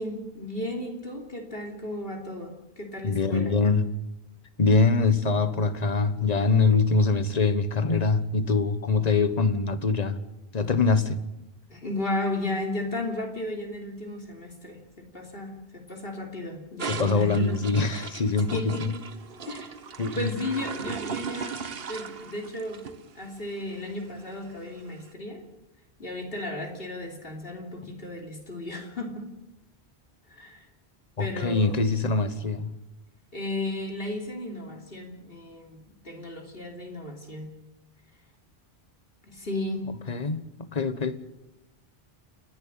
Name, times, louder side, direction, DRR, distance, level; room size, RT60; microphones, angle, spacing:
voice 1, 0.0-3.5 11.7-17.6 18.5-19.0 19.4-19.7 20.1-22.9 23.1-25.4 26.0-29.3 30.3-30.6 31.2-31.8 33.3-37.6 39.3-40.0, left 1 dB, 65° left, 3.4 m, -34 dB
voice 2, 3.0-3.9 4.6-10.2 10.5-11.2 16.9-18.9 20.0-20.3 31.2-32.7 40.1-40.4 40.7-41.2, left 4 dB, 40° left, 1.3 m, -23 dB
sound 1, 16.8-25.0, right 6 dB, 70° right, 1.3 m, -38 dB
29.0 x 10.5 x 8.7 m
omnidirectional pair, 1.1 m